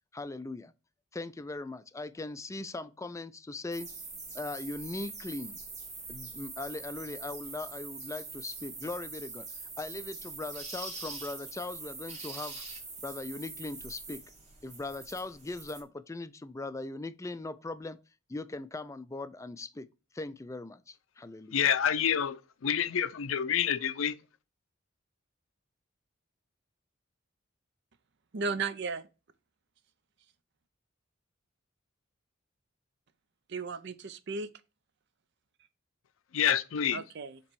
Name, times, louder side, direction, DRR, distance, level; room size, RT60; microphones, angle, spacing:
voice 1, 0.1-0.7 1.1-3.9 4.3-5.6 6.1-9.5 9.8-12.6 13.0-14.2 14.6-18.0 18.3-19.9 20.1-21.6, left 2 dB, 15° left, 0.4 m, -39 dB
sound 1, 3.7-15.8, right 4 dB, 35° right, 1.8 m, -43 dB
voice 2, 21.5-24.2 36.3-37.0, left 8 dB, 85° left, 0.5 m, -28 dB
voice 3, 28.3-29.1 33.5-34.5 36.9-37.4, right 4 dB, 60° right, 0.6 m, -35 dB
7.1 x 3.0 x 4.6 m
head